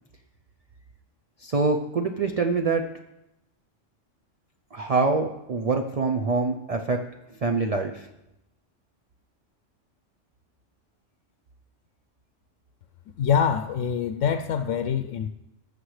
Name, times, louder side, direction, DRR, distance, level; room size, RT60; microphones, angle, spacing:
voice 1, 1.4-2.9 4.7-7.1 7.4-8.1, right 4 dB, 40° right, 4 dB, 0.5 m, -25 dB
voice 2, 13.2-15.3, left 7 dB, 80° left, 9 dB, 0.9 m, -25 dB
19.5 x 6.8 x 3.2 m, 0.90 s
omnidirectional pair, 1.3 m